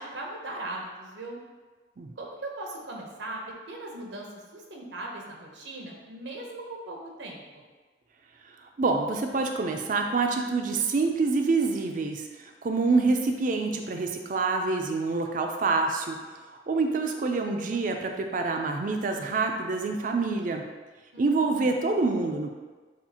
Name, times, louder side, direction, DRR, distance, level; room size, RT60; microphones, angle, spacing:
voice 1, 0.0-1.4 2.2-3.4 3.7-7.6 21.1-21.7, right 2 dB, 85° right, 0 dB, 0.8 m, -39 dB
voice 2, 8.8-12.2 12.6-16.2 16.7-20.6 21.2-22.5, right 3 dB, 45° right, 3 dB, 0.4 m, -26 dB
7.0 x 2.4 x 2.8 m, 1.4 s
head